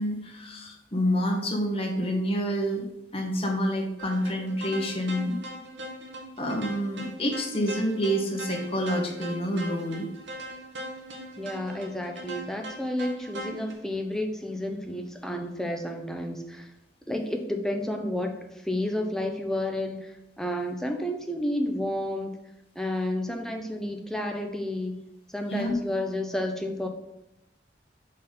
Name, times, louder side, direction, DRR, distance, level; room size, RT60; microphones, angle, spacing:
voice 1, 0.0-2.8 3.1-5.4 6.4-10.1 25.5-25.7, equal, 30° left, 1 dB, 1.6 m, -28 dB
sound 1, 4.0-13.7, right 1 dB, 80° right, 1.8 m, -40 dB
voice 2, 11.4-16.7 17.1-18.4 18.6-22.4 22.7-25.0 25.3-26.9, left 1 dB, 5° left, 3 dB, 0.8 m, -31 dB
6.3 x 5.7 x 5.2 m, 0.86 s
head